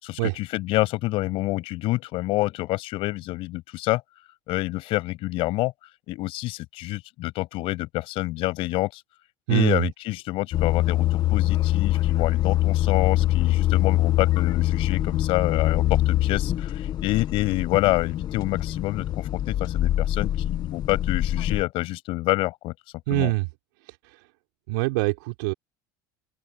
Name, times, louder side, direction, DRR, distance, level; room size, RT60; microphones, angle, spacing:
voice 1, 0.0-4.0 4.5-5.7 6.1-9.0 9.5-22.7 23.1-23.3, left 19 dB, 60° left, 7.8 m, -27 dB
voice 2, 9.5-9.8 23.1-23.5 23.9-24.0 24.7-25.5, right 22 dB, 80° right, 3.6 m, -24 dB
sound 1, 10.5-21.6, left 14 dB, 40° left, 1.5 m, -24 dB
open air
supercardioid pair, 125°, 11 cm